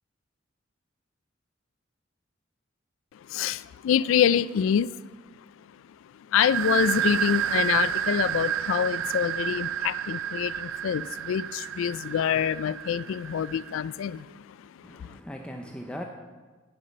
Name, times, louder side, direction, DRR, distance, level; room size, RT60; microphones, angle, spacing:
voice 1, 3.3-4.9 6.3-14.6 14.9-15.2, left 8 dB, 75° left, 0.3 m, -26 dB
sound 1, 6.4-13.9, right 9 dB, 75° right, 0.4 m, -30 dB
voice 2, 14.8-16.0, equal, 5° left, 0.5 m, -39 dB
15.5 x 5.9 x 5.2 m
head